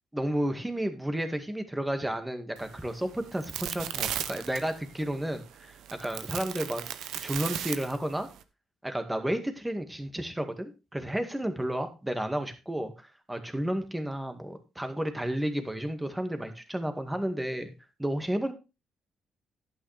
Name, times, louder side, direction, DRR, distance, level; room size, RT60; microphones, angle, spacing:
voice 1, 0.1-6.8 7.2-8.3 8.8-17.7 18.0-18.5, right 1 dB, 10° right, 7 dB, 2.0 m, -32 dB
sound 1, 2.6-8.4, right 10 dB, 85° right, 0.9 m, -37 dB
11.0 x 9.1 x 3.4 m, 0.28 s
cardioid pair, 90°, 0 cm